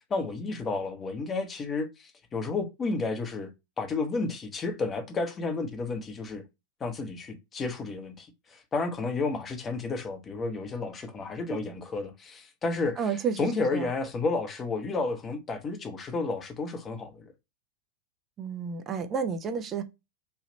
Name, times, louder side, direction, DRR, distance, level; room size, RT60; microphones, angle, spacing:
voice 1, 0.1-3.5 3.8-6.4 6.8-17.3, left 3 dB, 20° left, 0.8 m, -32 dB
voice 2, 13.0-13.9 18.4-19.8, right 6 dB, 25° right, 0.5 m, -31 dB
3.4 x 2.4 x 3.9 m
figure-of-eight pair, 90°, 0 cm